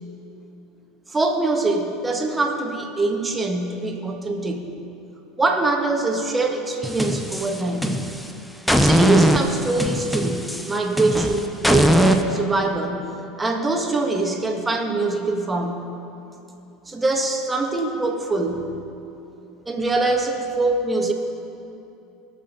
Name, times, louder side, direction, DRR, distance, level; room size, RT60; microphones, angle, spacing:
voice 1, 1.1-4.8 5.4-8.1 8.8-15.8 16.9-18.7 19.6-21.1, right 2 dB, 15° right, 2 dB, 1.8 m, -23 dB
sound 1, 6.8-8.3 8.7-12.2, equal, ahead, 0.9 m, -20 dB
19.5 x 6.7 x 5.5 m, 2.8 s
hypercardioid pair, 90°, 0 cm